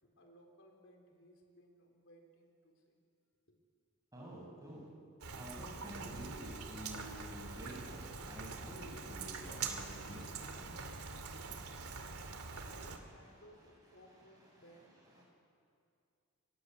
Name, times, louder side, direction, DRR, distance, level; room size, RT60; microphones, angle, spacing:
voice 1, 0.0-3.0 3.5-3.6 12.5-15.2, equal, 60° left, 2 dB, 4.1 m, -62 dB
voice 2, 4.1-4.9 5.3-10.8 13.0-13.4 14.1-14.3 14.6-14.7 15.2-15.3, equal, 15° right, -3 dB, 7.8 m, -50 dB
Rain, 5.2-13.0, right 4 dB, 85° right, 2.6 m, -44 dB
29.0 x 23.5 x 8.2 m, 2.3 s
head